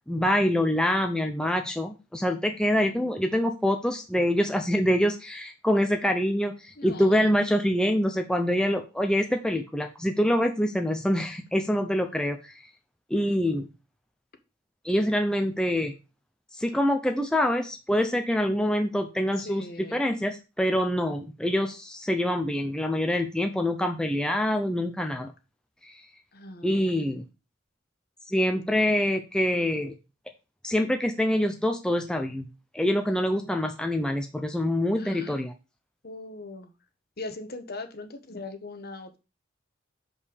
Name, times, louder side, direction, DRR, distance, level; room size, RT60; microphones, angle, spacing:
voice 1, 0.1-12.5 13.1-13.7 14.8-15.9 16.5-19.6 19.9-25.3 25.8-26.0 26.6-27.2 28.3-29.9 30.6-32.5 32.7-35.5, equal, 5° left, 4 dB, 0.6 m, -25 dB
voice 2, 2.8-3.2 6.8-7.3 19.4-20.0 26.3-27.0 35.0-35.4 36.0-36.7 37.2-39.2, left 3 dB, 50° left, 7 dB, 1.1 m, -40 dB
5.3 x 5.2 x 6.5 m, 0.29 s
head